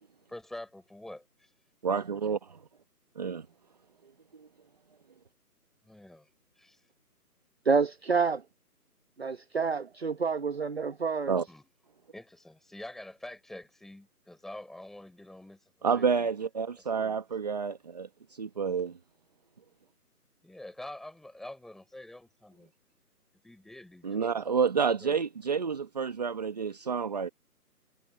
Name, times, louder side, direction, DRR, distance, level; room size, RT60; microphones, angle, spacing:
voice 1, 0.3-1.5 5.8-6.3 6.6-6.8 11.5-11.6 12.1-16.3 17.0-17.2 20.4-22.7 23.4-24.1 24.3-24.5 25.0-25.2, left 1 dB, ahead, 4.1 m, -46 dB
voice 2, 1.8-2.6 3.1-3.4 11.3-11.4 15.8-19.0 24.0-27.3, right 6 dB, 25° right, 1.6 m, -29 dB
voice 3, 7.6-8.4 9.2-11.4, right 5 dB, 40° right, 1.1 m, -28 dB
figure-of-eight pair, 170°, 47 cm